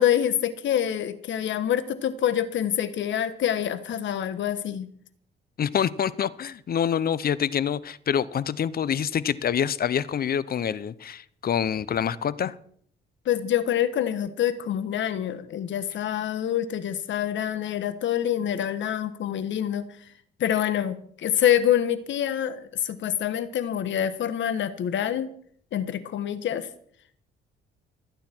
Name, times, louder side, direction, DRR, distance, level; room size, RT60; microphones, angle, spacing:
voice 1, 0.0-4.9 13.2-19.8 20.4-25.3 25.7-26.7, left 10 dB, 70° left, 13 dB, 1.3 m, -26 dB
voice 2, 5.6-12.5, left 8 dB, 50° left, 18 dB, 0.8 m, -26 dB
26.0 x 9.3 x 4.5 m, 0.62 s
cardioid pair, 90°, 20 cm